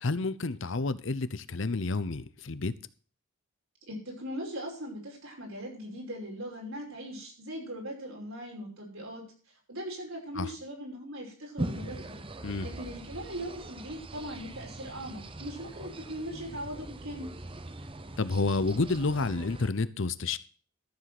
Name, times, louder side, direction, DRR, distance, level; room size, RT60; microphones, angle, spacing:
voice 1, 0.0-2.7 10.4-10.5 12.4-12.7 18.2-20.4, left 3 dB, 60° left, 0.7 m, -30 dB
voice 2, 3.9-9.2 9.7-12.2 12.6-17.3, equal, 75° right, 5.6 m, -40 dB
sound 1, 11.6-19.7, right 1 dB, 25° right, 0.8 m, -41 dB
13.0 x 7.5 x 6.0 m
head